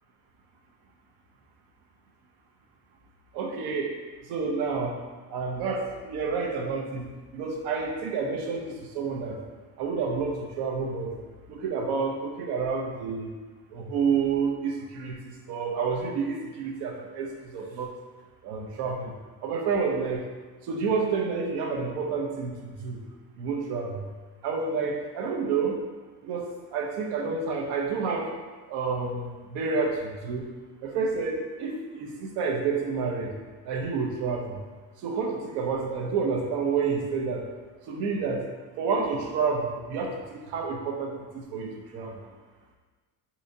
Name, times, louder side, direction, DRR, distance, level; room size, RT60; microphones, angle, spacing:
voice 1, 3.3-4.0 4.3-5.0 5.3-9.4 9.8-11.1 11.5-13.3 13.7-17.9 18.4-19.1 19.4-20.2 20.7-23.0 23.4-24.1 24.4-25.8 26.2-28.3 28.7-30.5 30.8-33.3 33.6-34.6 35.0-37.5 37.9-38.5 38.8-42.3, right 5 dB, 75° right, 1 dB, 0.7 m, -29 dB
3.7 x 2.7 x 2.6 m, 1.4 s
cardioid pair, 110°, 39 cm